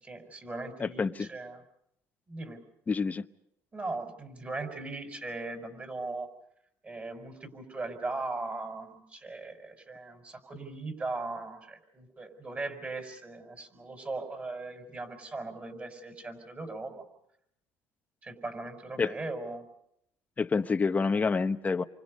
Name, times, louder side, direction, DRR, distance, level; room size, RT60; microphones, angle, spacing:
voice 1, 0.0-1.6 2.3-2.6 3.7-6.3 6.8-17.0 18.2-19.7, right 3 dB, 25° right, 6 dB, 5.6 m, -39 dB
voice 2, 0.8-1.3 2.9-3.3 19.0-19.1 20.4-21.8, left 4 dB, 25° left, 10 dB, 1.0 m, -28 dB
30.0 x 25.0 x 5.4 m, 0.76 s
cardioid pair, 110°, 6 cm